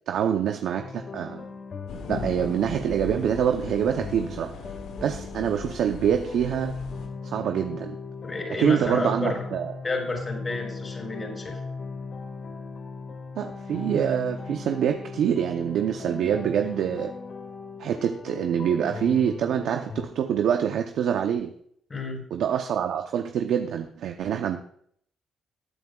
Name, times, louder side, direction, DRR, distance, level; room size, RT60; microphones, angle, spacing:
voice 1, 0.0-1.4 2.1-4.5 5.0-6.8 7.2-8.0 8.6-9.8 13.4-17.1 17.8-21.5 22.3-24.6, right 8 dB, 75° right, 6 dB, 0.7 m, -25 dB
sound 1, 0.8-20.1, left 4 dB, 50° left, 1.8 m, -38 dB
sound 2, 1.9-7.1, left 4 dB, 85° left, 2.0 m, -38 dB
voice 2, 8.2-9.5 9.8-11.6 21.9-22.2, left 3 dB, 35° left, 1 dB, 5.2 m, -31 dB
18.5 x 9.4 x 2.4 m, 0.63 s
cardioid pair, 80°, 0 cm